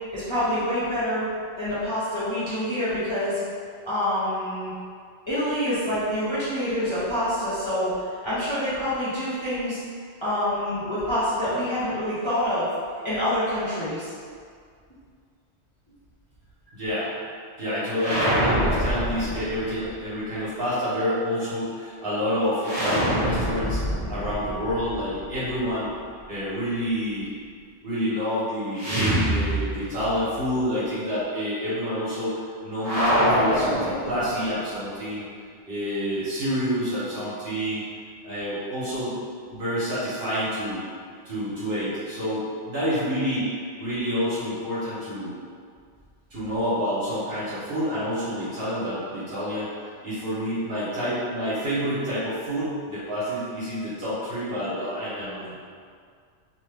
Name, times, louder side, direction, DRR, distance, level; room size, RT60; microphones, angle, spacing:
voice 1, 0.1-3.4 3.8-4.7 5.3-9.8 10.2-12.7 13.0-14.1, equal, 30° left, -13 dB, 0.7 m, -26 dB
voice 2, 16.7-17.1 17.6-23.8 24.1-25.9 26.3-27.3 27.8-28.8 29.2-35.2 35.6-37.8 38.2-39.1 39.5-40.8 41.2-43.5 43.8-45.3 46.3-55.5, equal, 55° right, -12 dB, 1.1 m, -28 dB
sound 1, 18.0-19.9 22.6-25.6 28.8-30.2 30.4-30.5 32.8-34.6, equal, 40° right, 0.6 m, -25 dB
2.8 x 2.2 x 3.2 m, 2.1 s
omnidirectional pair, 1.2 m